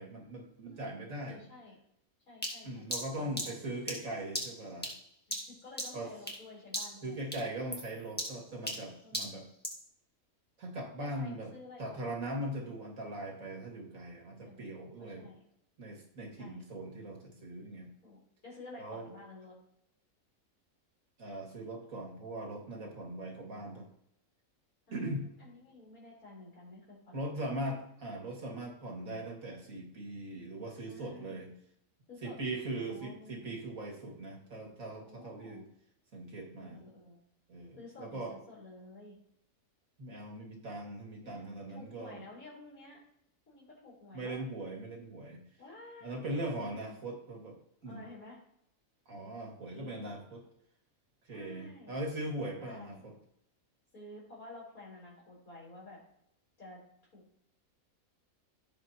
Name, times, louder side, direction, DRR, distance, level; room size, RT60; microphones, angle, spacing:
voice 1, 0.0-1.4 2.6-4.9 5.9-6.1 7.0-9.5 10.6-11.5 11.8-15.3 15.8-17.9 18.8-19.1 21.2-23.9 24.9-25.3 27.1-31.5 32.2-35.6 36.1-36.8 37.5-38.3 40.0-42.2 44.1-45.4 46.0-47.6 47.8-48.1 49.1-50.5 51.3-53.1, right 1 dB, 70° right, 0 dB, 2.7 m, -40 dB
voice 2, 0.6-1.0 1.3-1.8 2.3-2.8 3.2-3.8 5.3-7.2 9.0-9.4 11.0-12.1 14.4-14.7 15.0-15.4 16.4-16.6 18.0-19.6 22.9-23.5 24.9-27.3 30.9-31.4 32.1-32.4 32.9-33.6 35.1-35.6 36.6-37.2 37.8-39.2 41.2-43.0 43.5-44.5 45.6-46.4 46.7-47.0 47.9-48.4 49.7-50.1 51.2-52.0 52.6-53.0 53.9-56.0 56.6-56.8 57.1-57.2, left 2 dB, 80° left, -6 dB, 4.3 m, -52 dB
sound 1, 2.4-6.5 6.7-7.1 7.3-9.9, equal, 5° left, 1.6 m, -39 dB
15.5 x 5.6 x 2.9 m, 0.75 s
omnidirectional pair, 1.5 m